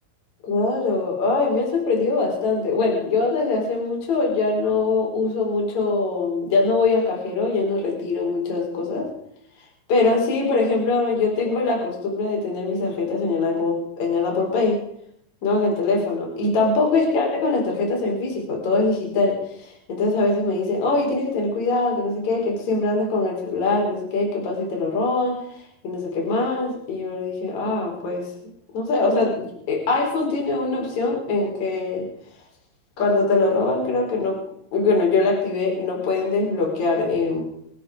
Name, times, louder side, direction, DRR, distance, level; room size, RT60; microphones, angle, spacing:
voice 1, 0.4-9.1 9.9-14.8 15.4-19.4 19.6-25.3 25.8-28.3 28.7-32.1 33.0-34.4 34.7-37.4, left 3 dB, 35° left, -1 dB, 5.4 m, -22 dB
26.5 x 9.7 x 5.1 m, 0.70 s
omnidirectional pair, 5.7 m